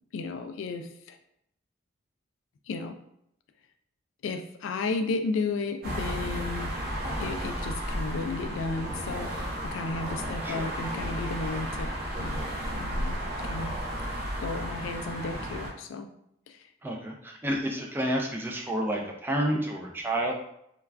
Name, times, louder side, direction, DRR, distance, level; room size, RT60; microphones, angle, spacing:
voice 1, 0.1-1.2 2.7-3.0 4.2-6.7 7.2-11.9 12.2-12.4 12.7-13.7 14.0-16.1 16.5-16.6, left 3 dB, 90° left, 7 dB, 0.3 m, -34 dB
sound 1, 5.8-15.7, equal, 50° right, 0.7 m, -33 dB
voice 2, 10.4-10.8 16.8-20.3, right 1 dB, 10° right, 0 dB, 0.4 m, -30 dB
2.3 x 2.3 x 3.2 m, 0.75 s
head